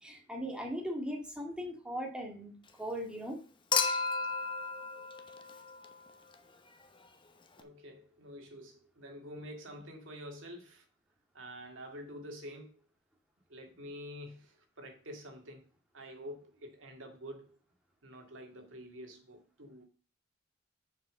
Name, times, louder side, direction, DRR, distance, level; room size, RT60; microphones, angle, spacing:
voice 1, 0.0-3.4 3.8-4.1, equal, 5° right, 0 dB, 2.0 m, -39 dB
Human group actions / Chink clink / Liquid, 3.7-6.1 7.6-7.7, left 5 dB, 25° left, 0.9 m, -33 dB
voice 2, 7.6-10.9 11.3-12.8 13.5-15.7 15.9-17.6 18.0-19.8, equal, 70° right, 3 dB, 2.3 m, -48 dB
7.2 x 5.4 x 6.3 m, 0.39 s
head